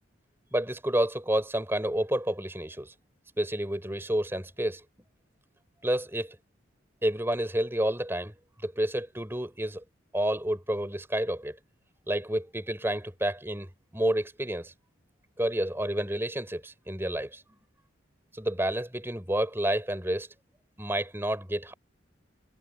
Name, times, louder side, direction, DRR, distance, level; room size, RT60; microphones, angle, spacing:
voice 1, 0.5-2.9 3.4-4.8 5.8-6.4 7.0-8.3 8.6-9.8 10.1-11.6 12.1-14.7 15.4-17.4 18.3-20.3 20.8-21.7, right 1 dB, 10° right, 4.1 m, -29 dB
head